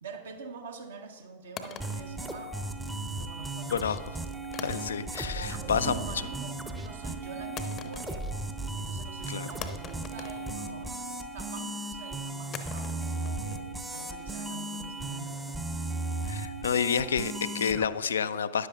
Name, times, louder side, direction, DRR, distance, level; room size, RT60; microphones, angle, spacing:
voice 1, 0.0-2.5 3.1-4.0 5.3-5.6 5.9-8.3 8.7-15.6, right 5 dB, 65° right, 4 dB, 1.1 m, -46 dB
sound 1, 1.6-3.0 4.5-5.4 5.7-6.1 7.6-8.5 8.8-8.9 9.6-11.1 12.5-15.5, left 7 dB, 30° left, 0.7 m, -45 dB
sound 2, 1.8-17.9, right 2 dB, 10° right, 0.7 m, -36 dB
voice 2, 3.7-4.2 4.5-6.1 9.3-9.5 16.2-18.7, left 7 dB, 70° left, 13 dB, 0.3 m, -29 dB
sound 3, 5.5-10.1 10.4-10.5, right 10 dB, 45° right, 0.5 m, -45 dB
13.0 x 10.0 x 2.4 m, 1.4 s
figure-of-eight pair, 90°, 0 cm